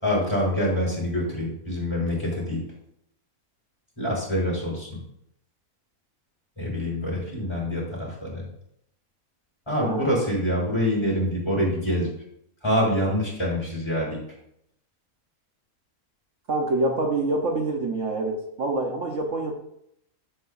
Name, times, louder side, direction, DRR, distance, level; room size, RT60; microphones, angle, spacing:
voice 1, 0.0-2.6 4.0-5.0 6.6-8.4 9.7-12.1 12.6-14.2, equal, 20° left, -5 dB, 4.8 m, -25 dB
voice 2, 9.8-10.3 16.5-19.5, right 2 dB, 60° right, 2 dB, 1.5 m, -26 dB
14.0 x 8.1 x 2.7 m, 0.74 s
omnidirectional pair, 1.5 m